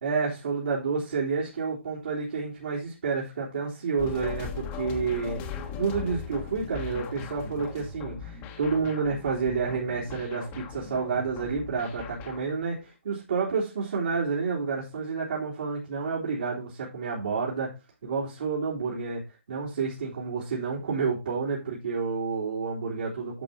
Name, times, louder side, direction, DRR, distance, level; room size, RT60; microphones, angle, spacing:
voice 1, 0.0-5.4 5.8-17.7 18.0-19.2 19.5-23.4, right 5 dB, 60° right, -7 dB, 3.6 m, -29 dB
sound 1, 4.0-12.6, left 6 dB, 25° left, 1.6 m, -39 dB
11.0 x 6.5 x 2.8 m, 0.27 s
hypercardioid pair, 145°, 7 cm